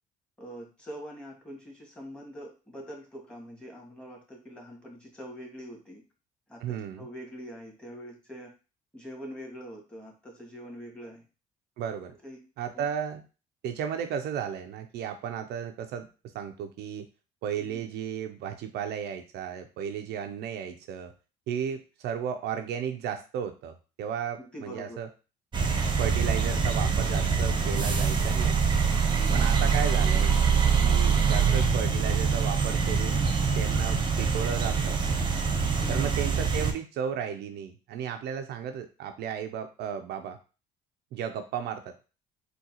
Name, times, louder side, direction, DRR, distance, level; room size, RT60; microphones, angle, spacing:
voice 1, 0.4-6.0 6.5-8.5 8.9-11.2 12.2-12.4 12.7-12.9 24.4-25.0 29.2-29.5 35.8-36.1, equal, 5° left, -1 dB, 1.6 m, -44 dB
voice 2, 6.6-7.1 11.8-12.1 12.6-13.2 13.6-16.1 16.3-17.1 17.4-21.1 21.5-25.1 26.0-28.6 29.3-30.3 30.8-33.2 33.6-35.0 35.9-40.4 41.1-42.0, right 8 dB, 70° right, 7 dB, 0.4 m, -34 dB
sound 1, 25.5-36.7, right 5 dB, 25° right, 0.8 m, -24 dB
3.7 x 2.3 x 2.8 m, 0.33 s
supercardioid pair, 65°, 18 cm